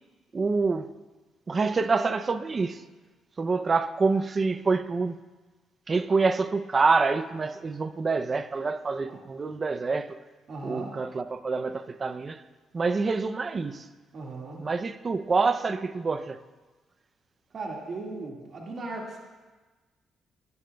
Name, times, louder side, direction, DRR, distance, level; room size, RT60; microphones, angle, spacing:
voice 1, 0.3-0.9 1.5-2.8 3.4-5.1 5.9-10.2 10.6-12.4 12.7-13.8 14.6-16.4, right 4 dB, 35° right, 0.5 m, -26 dB
voice 2, 10.5-11.0 14.1-14.7 17.5-19.2, right 3 dB, 55° right, 1.9 m, -37 dB
15.0 x 11.5 x 2.3 m
cardioid pair, 90°, 0 cm